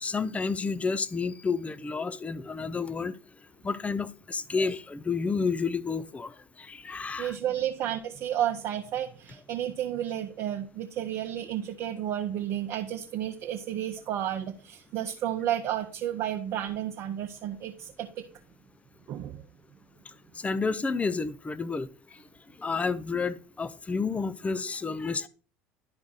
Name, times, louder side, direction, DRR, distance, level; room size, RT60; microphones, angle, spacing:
voice 1, 0.0-3.1 3.6-7.3 20.4-21.9 22.6-25.3, left 4 dB, 20° left, 0.6 m, -30 dB
voice 2, 7.2-18.3 19.1-19.4, right 11 dB, 50° right, 0.8 m, -32 dB
11.5 x 4.7 x 4.0 m
hypercardioid pair, 70°, 7 cm